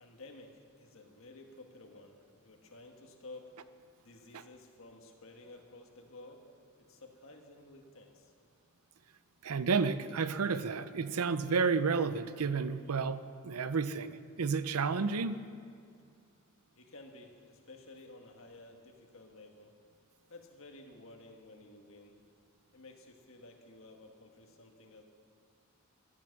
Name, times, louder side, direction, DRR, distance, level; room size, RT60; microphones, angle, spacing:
voice 1, 0.0-3.5 4.0-6.4 6.7-8.3 16.8-19.8 20.3-22.2 22.7-25.0, left 2 dB, 65° left, 3 dB, 1.7 m, -53 dB
voice 2, 9.4-15.4, right 5 dB, 85° right, 13 dB, 0.6 m, -31 dB
14.5 x 12.5 x 6.6 m, 2.3 s
head